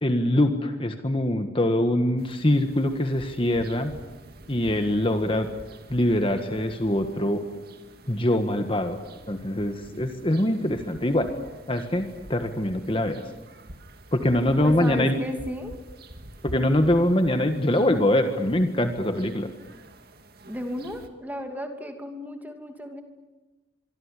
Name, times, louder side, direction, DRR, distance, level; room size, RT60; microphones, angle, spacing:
voice 1, 0.0-3.9 4.5-5.5 5.9-7.4 8.1-9.0 9.3-11.3 11.7-13.2 14.1-15.2 16.4-19.5, left 1 dB, 25° left, 7 dB, 1.5 m, -23 dB
sound 1, 2.2-21.1, right 1 dB, 50° right, 2.2 m, -47 dB
voice 2, 14.6-15.8 20.5-23.0, equal, 10° right, 5 dB, 2.6 m, -34 dB
25.0 x 24.5 x 8.4 m, 1.1 s
head